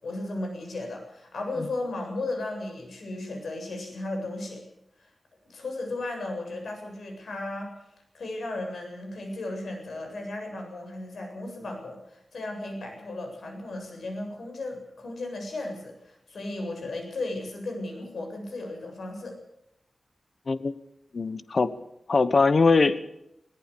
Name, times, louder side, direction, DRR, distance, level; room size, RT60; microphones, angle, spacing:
voice 1, 0.0-4.6 5.5-7.7 8.1-19.4, left 2 dB, 80° left, 3 dB, 7.6 m, -35 dB
voice 2, 21.1-21.7 22.1-23.0, left 4 dB, 50° left, 13 dB, 1.0 m, -21 dB
21.5 x 18.0 x 6.9 m, 0.82 s
wide cardioid pair, 135°, 0 cm